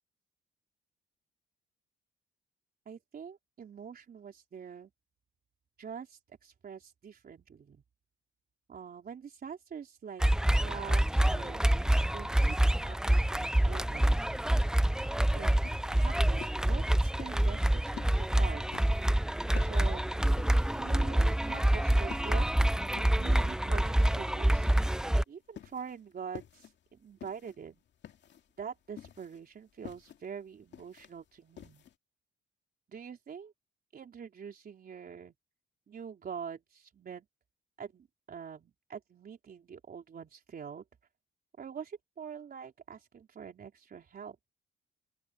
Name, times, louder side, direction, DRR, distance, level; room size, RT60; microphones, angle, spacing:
voice 1, 2.9-4.9 5.8-7.8 8.7-11.6 12.1-14.3 15.3-15.6 15.9-18.9 19.5-20.3 20.7-22.7 23.1-24.7 25.3-27.8 28.6-31.8 32.9-33.5 33.9-35.3 35.9-37.3 37.8-40.8 41.6-44.4, right 7 dB, 50° right, 4.2 m, -45 dB
sound 1, 10.2-25.2, right 1 dB, 5° right, 0.4 m, -27 dB
sound 2, 15.5-31.9, left 10 dB, 65° left, 2.3 m, -51 dB
open air
cardioid pair, 90°, 20 cm